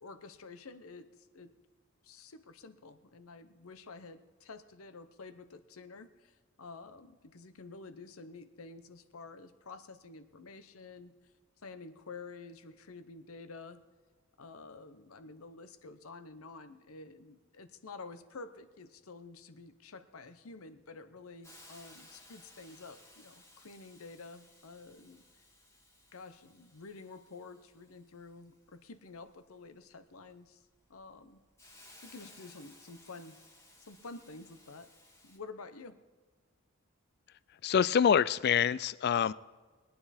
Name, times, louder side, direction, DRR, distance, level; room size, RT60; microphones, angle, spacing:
voice 1, 0.0-1.5 2.0-11.2 11.6-13.8 14.4-25.2 26.1-30.6 30.9-31.4 32.0-33.4 33.8-34.9 35.2-36.0, left 3 dB, 80° left, 11 dB, 0.9 m, -50 dB
Hiss, 21.4-35.4, left 1 dB, 15° left, 1.7 m, -59 dB
voice 2, 37.6-39.3, left 7 dB, 50° left, 19 dB, 0.3 m, -26 dB
21.0 x 9.5 x 4.3 m, 1.3 s
head